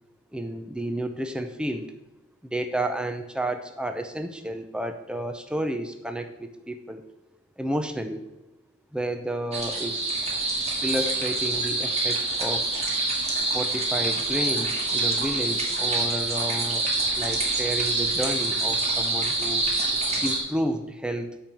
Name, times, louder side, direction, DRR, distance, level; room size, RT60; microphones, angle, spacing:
voice 1, 0.3-1.9 2.4-7.0 7.6-8.3 8.9-10.2 10.8-12.7 13.5-16.9 17.2-19.6 20.2-21.3, right 1 dB, 5° right, 7 dB, 0.5 m, -31 dB
sound 1, 9.5-20.4, right 2 dB, 30° right, 1.8 m, -26 dB
8.7 x 5.2 x 6.9 m, 1.0 s
head